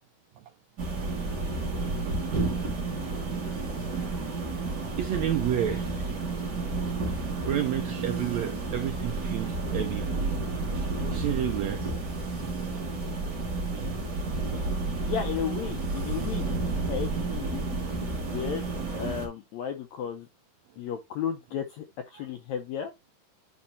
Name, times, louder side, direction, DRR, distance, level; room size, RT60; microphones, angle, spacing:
sound 1, 0.8-19.3, right 3 dB, 35° right, 2.0 m, -31 dB
voice 1, 2.4-2.7 5.0-6.2 7.1-7.2 7.4-11.9 12.7-12.8 22.1-22.2, right 11 dB, 80° right, 1.6 m, -31 dB
voice 2, 15.1-17.6 18.2-20.3 20.8-22.9, left 8 dB, 85° left, 1.6 m, -34 dB
9.8 x 4.3 x 2.7 m
omnidirectional pair, 4.0 m